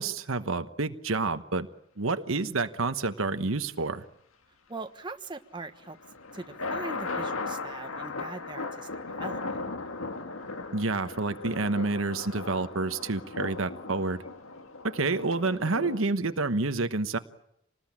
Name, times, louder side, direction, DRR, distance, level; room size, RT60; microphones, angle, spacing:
voice 1, 0.0-1.7 2.0-4.0 10.7-14.2 14.9-17.2, right 3 dB, 70° right, 10 dB, 1.1 m, -29 dB
voice 2, 4.7-6.0 6.3-8.9 9.2-9.4, right 3 dB, 20° right, 6 dB, 1.3 m, -40 dB
sound 1, 5.8-16.0, left 3 dB, 75° left, 1.8 m, -37 dB
27.0 x 20.0 x 8.7 m, 0.81 s
head